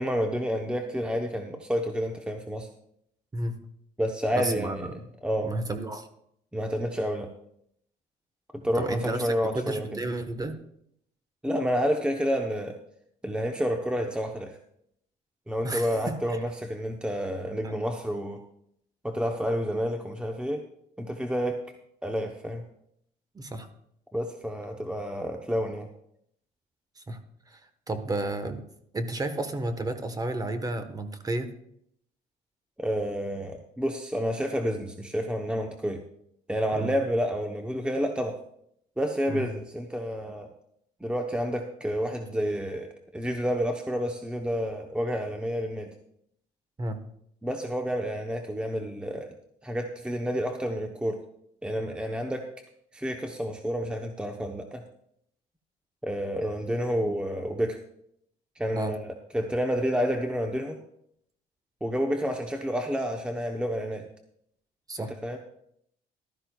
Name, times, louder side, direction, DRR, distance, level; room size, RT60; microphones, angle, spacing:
voice 1, 0.0-2.7 4.0-4.9 5.2-5.5 6.5-7.3 8.5-10.0 11.4-12.8 13.2-14.6 15.5-18.4 19.0-20.6 21.0-21.6 22.0-22.6 24.1-25.9 32.8-36.0 36.5-38.4 39.0-40.5 41.0-45.9 47.4-49.3 49.6-51.2 51.6-52.5 52.9-54.8 56.0-57.8 58.6-59.0 59.3-60.8 61.8-64.1 65.0-65.4, equal, 5° right, 4 dB, 0.8 m, -29 dB
voice 2, 4.4-5.0 5.4-6.1 8.7-10.6 15.6-16.1 17.6-17.7 23.3-23.7 27.0-27.2 27.5-27.6 27.9-28.6 28.9-31.5 36.7-36.9 39.3-39.5 46.8-47.0 58.7-58.9 64.9-65.1, right 2 dB, 20° right, 9 dB, 1.2 m, -32 dB
15.0 x 12.5 x 2.3 m, 0.71 s
cardioid pair, 110°, 17 cm